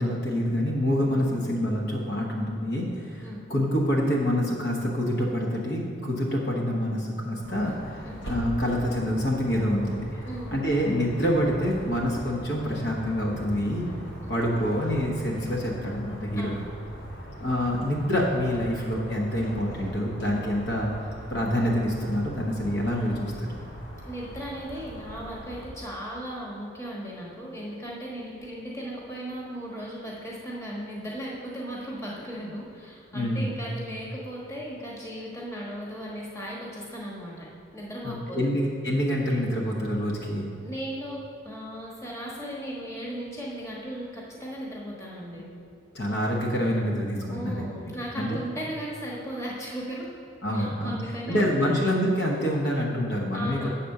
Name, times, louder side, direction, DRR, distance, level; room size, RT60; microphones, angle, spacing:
voice 1, 0.0-8.0 8.3-10.2 10.5-13.9 14.3-16.5 17.4-20.9 21.3-23.5 33.1-33.6 38.0-40.5 45.9-48.4 50.4-51.0 51.3-53.7, equal, 55° left, -2 dB, 1.1 m, -26 dB
sound 1, 7.4-25.7, equal, 70° left, 1.7 m, -41 dB
voice 2, 10.2-10.6 16.4-16.7 24.1-37.5 37.7-38.4 40.6-45.4 47.3-50.1 50.5-51.8 53.3-53.7, equal, 15° left, -4 dB, 1.3 m, -36 dB
8.2 x 4.2 x 6.5 m, 2.5 s
head